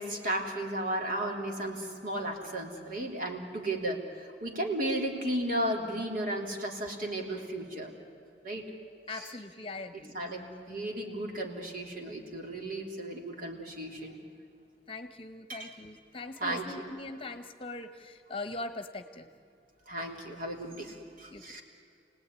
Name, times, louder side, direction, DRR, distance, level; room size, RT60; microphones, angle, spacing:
voice 1, 0.0-7.9 8.4-8.6 9.1-9.3 10.1-14.2 15.5-15.7 16.4-16.7 19.9-21.6, right 1 dB, 55° right, 1 dB, 3.4 m, -34 dB
voice 2, 9.1-10.2 14.9-19.3 21.3-21.4, left 2 dB, 30° left, 9 dB, 1.1 m, -41 dB
29.0 x 18.5 x 9.7 m, 2.5 s
head